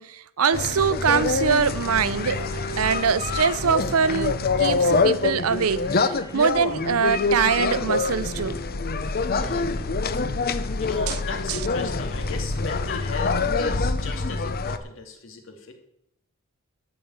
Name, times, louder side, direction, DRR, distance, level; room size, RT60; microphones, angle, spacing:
voice 1, 0.0-2.5 2.8-4.3 4.6-8.6 11.1-11.2 11.5-11.6, right 6 dB, 85° right, 0.6 m, -23 dB
sound 1, 0.5-14.8, left 3 dB, 45° left, 0.8 m, -25 dB
Bowed string instrument, 1.7-8.4, right 1 dB, 15° left, 3.3 m, -43 dB
voice 2, 9.3-9.9 10.8-15.7, left 3 dB, 65° left, 2.4 m, -37 dB
13.5 x 5.2 x 8.9 m
head